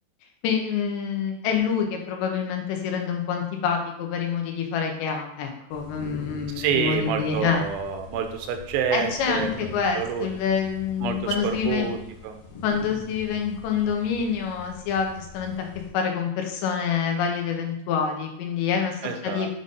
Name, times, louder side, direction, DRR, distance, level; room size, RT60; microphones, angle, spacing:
voice 1, 0.4-7.6 8.9-11.9 12.6-15.7 15.9-19.5, left 6 dB, 90° left, 2 dB, 3.3 m, -27 dB
sound 1, 5.7-15.9, left 4 dB, 65° left, 2.4 m, -43 dB
voice 2, 6.6-9.5 10.0-10.3 11.0-12.0 12.2-12.4 19.0-19.5, right 7 dB, 85° right, 6 dB, 2.9 m, -27 dB
8.0 x 3.7 x 3.9 m, 0.81 s
omnidirectional pair, 4.9 m